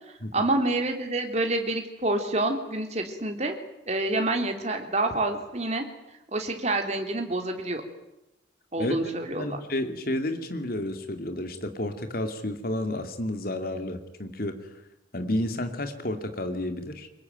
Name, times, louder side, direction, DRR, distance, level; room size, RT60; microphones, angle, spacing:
voice 1, 0.3-3.6 3.9-5.8 6.3-7.8 8.7-9.6, right 2 dB, 35° right, 4 dB, 3.3 m, -27 dB
voice 2, 9.3-14.7 15.1-17.1, left 1 dB, 50° left, 7 dB, 2.7 m, -31 dB
24.0 x 21.5 x 9.2 m, 0.91 s
head